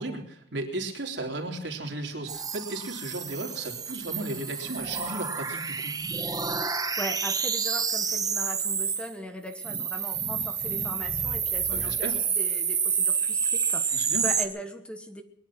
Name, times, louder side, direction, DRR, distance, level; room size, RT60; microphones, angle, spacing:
voice 1, 0.0-5.9 11.7-12.2 13.9-14.3, right 2 dB, 65° right, 2 dB, 3.5 m, -35 dB
sound 1, 2.3-9.1 9.5-14.4, right 6 dB, 20° right, 1.1 m, -29 dB
voice 2, 7.0-15.2, equal, 5° left, 6 dB, 1.3 m, -39 dB
21.5 x 11.0 x 6.1 m, 0.80 s
head